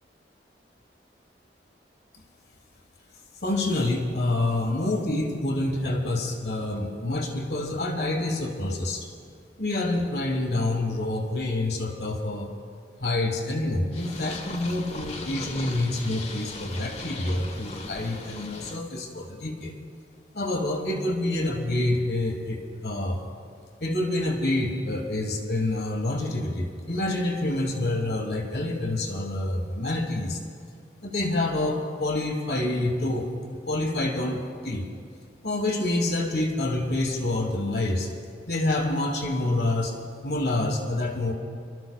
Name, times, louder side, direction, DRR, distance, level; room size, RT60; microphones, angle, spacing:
voice 1, 3.4-9.1 9.6-12.5 13.0-19.7 20.3-23.3 23.8-30.4 31.0-33.3 33.7-34.9 35.4-38.1 38.5-39.9 40.2-41.3, left 2 dB, 65° left, 2 dB, 1.4 m, -27 dB
Purr, 13.9-18.8, left 2 dB, 35° left, 1.0 m, -38 dB
29.0 x 13.0 x 2.3 m, 2.2 s
head